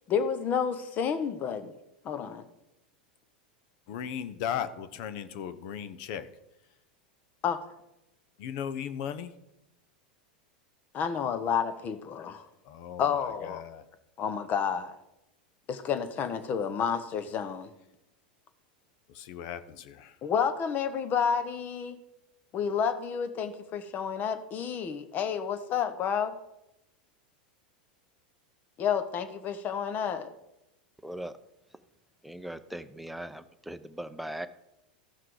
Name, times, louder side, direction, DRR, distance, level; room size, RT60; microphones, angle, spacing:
voice 1, 0.1-1.7 2.0-2.4 7.4-7.6 10.9-12.5 13.0-13.6 14.2-14.9 15.7-17.7 20.2-22.0 22.5-26.3 28.8-30.3, left 7 dB, 40° left, 11 dB, 1.1 m, -30 dB
voice 2, 3.9-6.3 8.4-9.3 12.6-13.8 19.1-20.2, left 8 dB, 60° left, 12 dB, 0.8 m, -37 dB
voice 3, 31.0-31.3 32.2-34.5, right 1 dB, ahead, 9 dB, 0.7 m, -39 dB
14.0 x 5.8 x 4.9 m, 0.89 s
hypercardioid pair, 105°, 5 cm